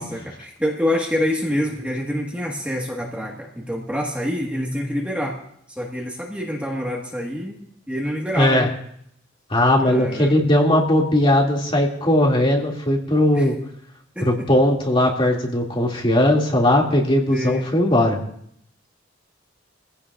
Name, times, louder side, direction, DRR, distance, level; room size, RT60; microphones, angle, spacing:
voice 1, 0.0-5.4 5.7-7.6 7.9-8.7 9.8-10.4 13.3-13.5 14.1-14.3 17.3-17.7, equal, 5° right, -1 dB, 1.5 m, -26 dB
voice 2, 8.3-8.7 9.5-13.6 14.2-18.2, left 1 dB, 30° left, -1 dB, 2.3 m, -18 dB
22.5 x 15.5 x 2.5 m, 0.70 s
head